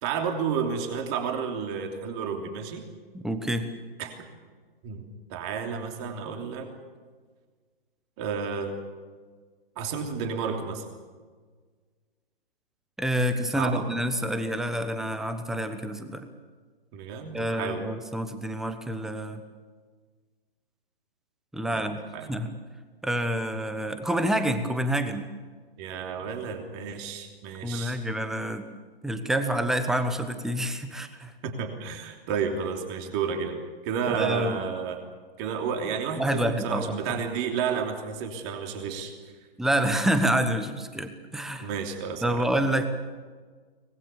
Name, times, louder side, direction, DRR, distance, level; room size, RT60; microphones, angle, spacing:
voice 1, 0.0-2.8 4.0-4.2 4.8-5.0 5.3-6.7 8.2-8.8 9.8-10.8 13.5-13.9 16.9-17.8 21.7-21.9 22.1-22.3 25.8-28.0 31.4-35.0 35.4-39.1 41.6-42.4, right 6 dB, 30° right, 4 dB, 3.1 m, -31 dB
voice 2, 3.1-3.7 13.0-16.3 17.3-19.4 21.5-22.0 22.3-22.5 23.0-25.3 27.6-28.6 29.0-31.3 34.1-34.6 36.2-37.2 39.6-41.7 42.2-42.9, right 1 dB, ahead, 9 dB, 1.1 m, -28 dB
24.0 x 20.5 x 7.0 m, 1.5 s
figure-of-eight pair, 130°, 30 cm